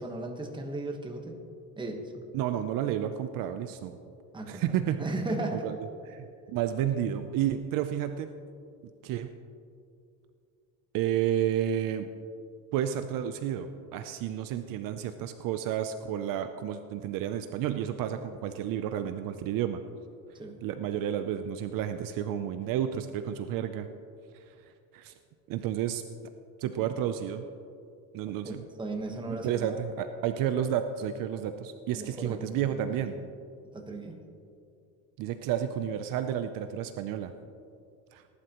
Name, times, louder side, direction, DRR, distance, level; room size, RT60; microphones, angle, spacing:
voice 1, 0.0-1.4 1.8-2.2 4.3-4.6 5.0-5.7 20.3-20.6 28.4-29.8 31.9-33.1 33.7-34.2, right 2 dB, 10° right, 2 dB, 1.2 m, -36 dB
voice 2, 2.3-4.0 4.5-5.0 5.5-5.8 6.1-8.3 9.0-9.3 10.9-12.1 12.7-19.8 20.6-23.9 24.5-24.6 24.9-25.1 25.5-26.0 26.6-27.5 28.1-28.7 29.3-33.1 35.2-37.3 38.1-38.2, right 10 dB, 55° right, 9 dB, 0.6 m, -31 dB
19.5 x 11.5 x 3.0 m, 2.5 s
cardioid pair, 145°, 39 cm